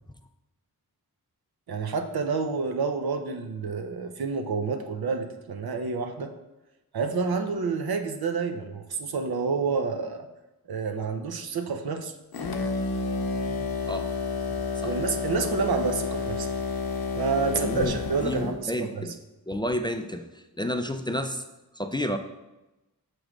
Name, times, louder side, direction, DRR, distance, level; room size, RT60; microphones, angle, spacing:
voice 1, 1.7-6.3 6.9-10.3 10.7-12.1 14.8-16.5 17.1-19.0, right 4 dB, 85° right, 6 dB, 0.6 m, -29 dB
sound 1, 12.3-18.6, left 4 dB, 80° left, 0.7 m, -30 dB
voice 2, 17.5-19.1 19.5-21.4 21.7-22.2, left 1 dB, 15° left, 6 dB, 0.3 m, -30 dB
6.1 x 3.1 x 4.9 m, 1.0 s
wide cardioid pair, 75°, 36 cm